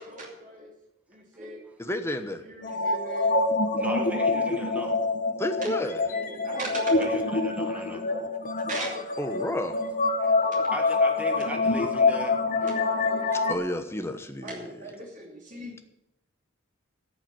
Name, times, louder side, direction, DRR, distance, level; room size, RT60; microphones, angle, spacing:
voice 1, 0.0-0.7 1.1-1.6 2.4-3.4 3.8-4.4 5.6-7.2 7.6-8.3 8.6-9.5 10.2-10.9 11.2-11.5 12.6-13.5 14.4-15.8, right 2 dB, 40° right, -2 dB, 2.7 m, -39 dB
voice 2, 1.8-2.4 5.4-6.0 9.2-9.8 13.3-14.7, left 1 dB, 10° left, 8 dB, 1.0 m, -31 dB
sound 1, 2.6-13.5, left 3 dB, 40° left, 1.0 m, -26 dB
voice 3, 3.7-5.0 7.0-8.0 10.7-12.3, right 1 dB, 5° right, 3 dB, 1.7 m, -37 dB
13.5 x 5.7 x 8.9 m, 0.88 s
head